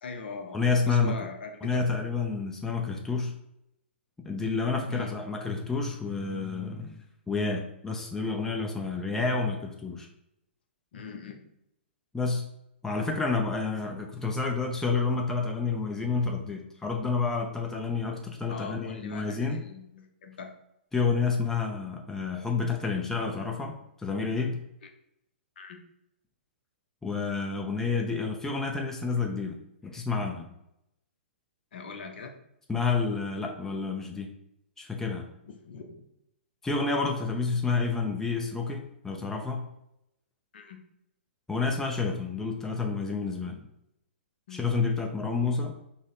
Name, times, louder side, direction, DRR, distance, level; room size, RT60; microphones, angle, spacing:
voice 1, 0.0-1.8 4.9-5.1 10.9-11.4 18.5-20.5 24.8-24.9 25.6-25.8 31.7-32.3 35.4-36.0 40.5-40.8 44.5-44.6, left 5 dB, 60° left, 5 dB, 0.6 m, -41 dB
voice 2, 0.5-1.2 1.6-3.4 4.2-7.0 7.3-10.1 12.1-12.4 12.8-19.6 20.9-24.6 27.0-29.6 29.8-30.4 32.7-34.3 34.8-35.3 36.6-39.7 41.5-43.6 44.5-45.7, left 4 dB, 5° left, 1 dB, 0.4 m, -29 dB
4.0 x 2.1 x 3.6 m, 0.80 s
hypercardioid pair, 120°, 6 cm